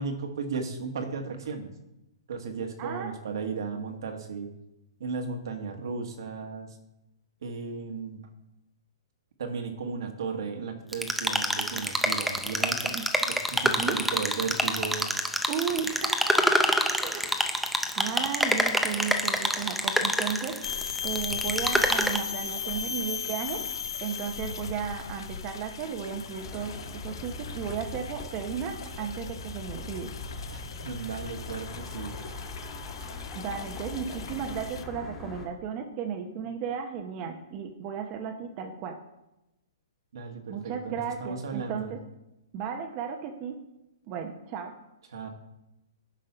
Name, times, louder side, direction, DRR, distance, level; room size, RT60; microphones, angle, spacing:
voice 1, 0.0-1.7 2.3-4.5 5.0-6.8 7.4-8.2 9.4-13.0 13.3-15.1 30.5-32.2 40.1-41.9 45.1-45.3, right 5 dB, 70° right, 4 dB, 1.6 m, -35 dB
voice 2, 2.8-3.1 12.9-13.1 13.7-14.0 15.5-16.5 17.0-17.4 17.9-23.6 24.0-30.1 33.3-39.0 40.5-42.0 42.5-43.5 44.1-44.8, right 7 dB, 30° right, 4 dB, 0.8 m, -34 dB
sound 1, 10.9-22.2, equal, ahead, 0.6 m, -27 dB
sound 2, 20.6-34.8, left 6 dB, 75° left, 1.1 m, -37 dB
sound 3, 26.4-35.5, left 2 dB, 15° left, 1.7 m, -41 dB
9.1 x 5.4 x 5.5 m, 0.93 s
hypercardioid pair, 160°, 2 cm